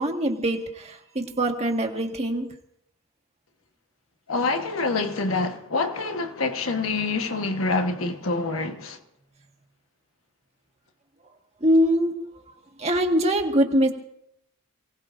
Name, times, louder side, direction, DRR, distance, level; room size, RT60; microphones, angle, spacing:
voice 1, 0.0-2.5 11.6-12.1 12.8-13.9, equal, 30° right, 1.7 m, -23 dB
voice 2, 4.3-9.0, left 3 dB, 80° left, 1.3 m, -26 dB
29.0 x 18.0 x 2.6 m
head